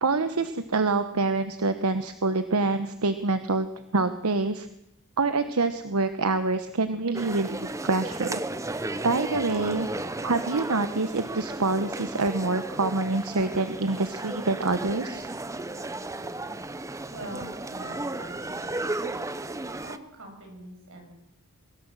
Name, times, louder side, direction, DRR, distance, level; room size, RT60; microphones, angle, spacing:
voice 1, 0.0-3.7 3.9-4.7 5.2-8.4 9.0-9.9 10.2-15.3, right 3 dB, 85° right, 10 dB, 1.1 m, -26 dB
sound 1, 7.1-20.0, right 2 dB, 15° right, 0.7 m, -34 dB
voice 2, 17.1-19.0 19.8-21.1, right 1 dB, 60° right, 2 dB, 7.2 m, -43 dB
24.0 x 16.5 x 7.6 m, 0.83 s
head